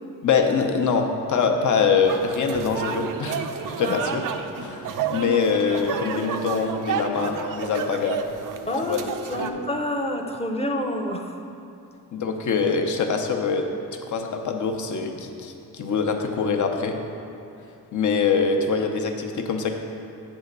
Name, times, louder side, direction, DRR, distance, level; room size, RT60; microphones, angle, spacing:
voice 1, 0.2-3.5 3.8-4.2 4.6-8.2 8.8-9.0 9.4-9.6 12.1-13.7 14.1-17.0 17.9-19.8, left 5 dB, 55° left, 4 dB, 0.8 m, -24 dB
sound 1, 2.0-9.5, right 6 dB, 60° right, 0.5 m, -31 dB
voice 2, 8.7-11.3, left 1 dB, 15° left, 3 dB, 0.7 m, -28 dB
8.1 x 3.6 x 6.6 m, 2.6 s
cardioid pair, 85°, 36 cm